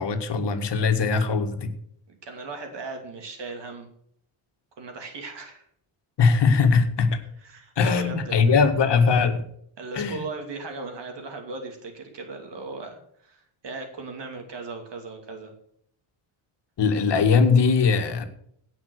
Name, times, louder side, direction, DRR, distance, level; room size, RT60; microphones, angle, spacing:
voice 1, 0.0-1.7 6.2-7.2 7.8-9.5 9.9-10.3 16.8-18.3, left 5 dB, 55° left, 7 dB, 1.9 m, -21 dB
voice 2, 2.2-3.9 4.8-5.6 7.4-8.5 9.8-15.5, right 3 dB, 55° right, 4 dB, 2.7 m, -37 dB
17.0 x 5.9 x 6.5 m, 0.67 s
cardioid pair, 120°, 50 cm